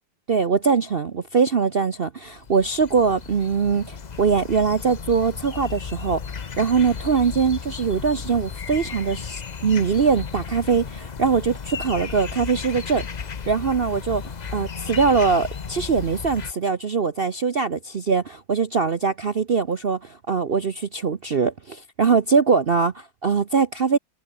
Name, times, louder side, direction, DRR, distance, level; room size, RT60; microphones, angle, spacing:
voice 1, 0.3-6.2 6.6-13.1 13.5-24.0, right 5 dB, 45° right, 0.8 m, -22 dB
sound 1, 2.3-16.5, left 6 dB, 45° left, 0.5 m, -34 dB
omnidirectional pair, 1.9 m